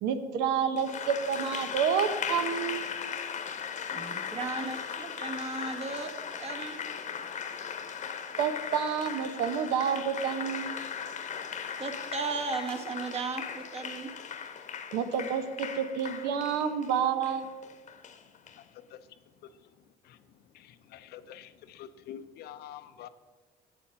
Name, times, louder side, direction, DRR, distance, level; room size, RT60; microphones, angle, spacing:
voice 1, 0.0-2.8 8.4-10.8 14.9-17.5, right 7 dB, 85° right, 9 dB, 0.8 m, -29 dB
Applause, 0.8-18.6, left 7 dB, 45° left, 0.9 m, -38 dB
voice 2, 3.9-6.8 11.8-14.1, right 4 dB, 40° right, 5 dB, 1.2 m, -36 dB
voice 3, 20.5-23.1, left 10 dB, 70° left, 12 dB, 0.6 m, -46 dB
7.8 x 7.0 x 5.7 m, 1.3 s
cardioid pair, 110°, 17 cm